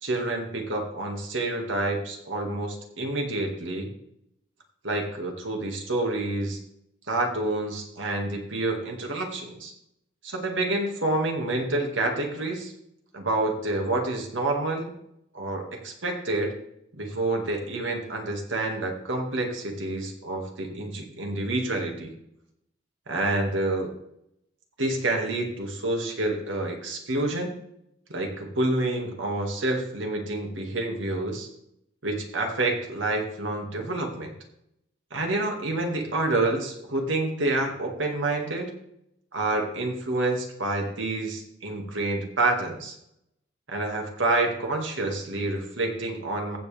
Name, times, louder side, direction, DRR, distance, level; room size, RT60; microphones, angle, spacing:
voice 1, 0.0-3.9 4.8-6.6 7.1-9.7 10.2-12.7 13.1-14.9 15.3-16.5 17.0-22.1 23.1-23.9 24.8-27.5 28.1-31.5 32.0-34.3 35.1-38.7 39.3-43.0 43.7-46.6, right 2 dB, 90° right, 2 dB, 2.3 m, -28 dB
15.0 x 7.5 x 3.6 m, 0.77 s
head